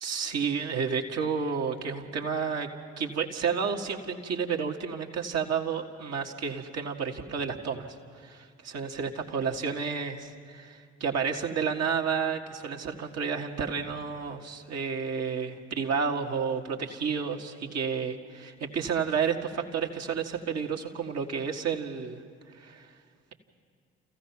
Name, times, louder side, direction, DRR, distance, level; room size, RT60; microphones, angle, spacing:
voice 1, 0.0-2.7 3.0-7.9 8.2-22.2 22.6-22.9, right 6 dB, 55° right, 3 dB, 1.8 m, -31 dB
29.0 x 15.5 x 5.9 m, 2.3 s
figure-of-eight pair, 40°, 31 cm